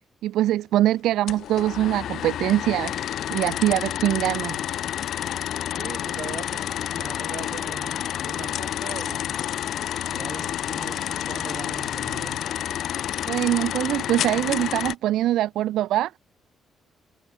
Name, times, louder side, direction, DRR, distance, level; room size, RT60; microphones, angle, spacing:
voice 1, 0.2-4.6 13.3-16.1, right 13 dB, 85° right, 0.7 m, -23 dB
sound 1, 1.3-14.9, left 11 dB, 75° left, 0.9 m, -29 dB
voice 2, 5.7-9.4 10.1-12.4, right 9 dB, 70° right, 2.4 m, -40 dB
cardioid pair, 80°, 0 cm